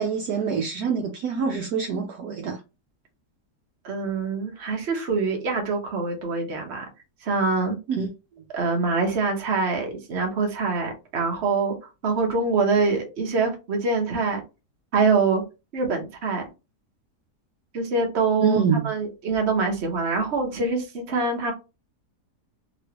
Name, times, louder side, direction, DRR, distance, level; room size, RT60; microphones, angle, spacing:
voice 1, 0.0-2.6 7.9-8.1 18.4-18.9, right 6 dB, 70° right, 1.0 m, -25 dB
voice 2, 3.8-6.8 7.2-7.8 8.5-11.8 12.0-14.4 14.9-15.4 15.7-16.4 17.7-21.5, right 4 dB, 45° right, 1.1 m, -24 dB
3.1 x 2.9 x 2.9 m
omnidirectional pair, 1.8 m